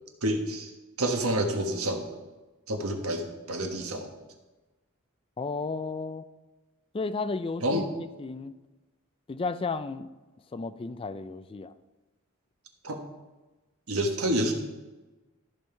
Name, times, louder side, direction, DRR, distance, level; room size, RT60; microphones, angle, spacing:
voice 1, 0.2-0.7 1.0-2.2 2.7-4.1 7.6-7.9 12.8-13.0 13.9-14.5, right 1 dB, 90° right, 4 dB, 1.4 m, -28 dB
voice 2, 5.4-6.2 6.9-7.8 8.2-8.5 9.3-10.1 10.5-11.7, left 3 dB, 25° left, 13 dB, 0.4 m, -33 dB
13.5 x 5.5 x 4.5 m, 1.1 s
head